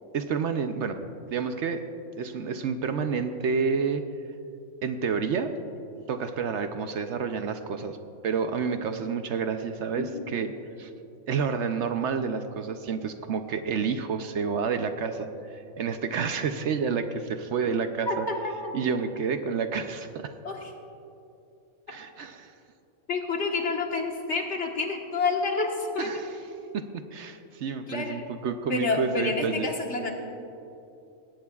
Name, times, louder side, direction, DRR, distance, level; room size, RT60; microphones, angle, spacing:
voice 1, 0.1-1.0 1.3-1.8 2.2-4.0 4.8-5.5 6.1-8.0 8.2-10.5 10.8-10.9 11.3-18.3 18.7-20.3 21.9-22.5 26.0-26.3 26.7-29.7, right 5 dB, 65° right, 8 dB, 0.9 m, -29 dB
voice 2, 18.1-18.7 20.4-20.7 23.1-26.1 27.9-28.3 28.7-30.1, left 3 dB, 60° left, 1 dB, 1.6 m, -29 dB
19.5 x 17.0 x 2.4 m, 2.8 s
omnidirectional pair, 1.4 m